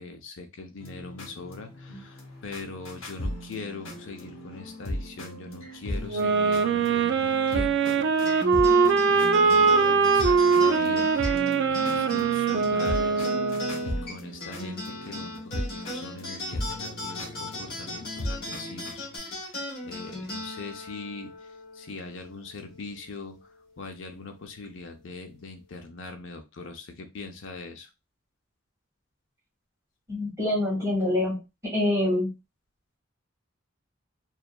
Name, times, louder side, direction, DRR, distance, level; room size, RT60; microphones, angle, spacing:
voice 1, 0.0-8.4 8.8-11.1 11.7-13.3 13.8-19.6 19.9-21.3 21.8-23.4 23.8-27.9, left 3 dB, 70° left, 5 dB, 0.5 m, -41 dB
sound 1, 0.8-19.2, equal, 85° left, 0.9 m, -37 dB
sound 2, 6.1-13.9, right 5 dB, 60° right, 0.3 m, -22 dB
sound 3, 8.2-23.0, left 1 dB, 50° left, 1.0 m, -38 dB
voice 2, 30.1-31.4 31.7-32.3, left 1 dB, 15° right, -5 dB, 1.2 m, -25 dB
2.7 x 2.3 x 2.2 m, 0.25 s
head